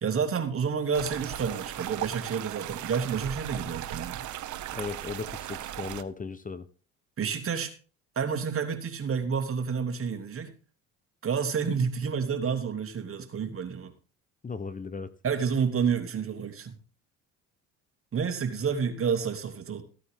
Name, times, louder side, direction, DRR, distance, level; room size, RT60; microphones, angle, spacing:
voice 1, 0.0-4.2 7.2-7.7 8.2-10.5 11.2-13.9 15.2-16.7 18.1-19.8, right 6 dB, 40° right, 2.7 m, -29 dB
sound 1, 0.9-6.0, right 12 dB, 60° right, 1.1 m, -37 dB
voice 2, 4.7-6.7 14.4-15.1, left 4 dB, 25° left, 1.1 m, -36 dB
15.0 x 9.1 x 3.7 m
supercardioid pair, 80°, 33 cm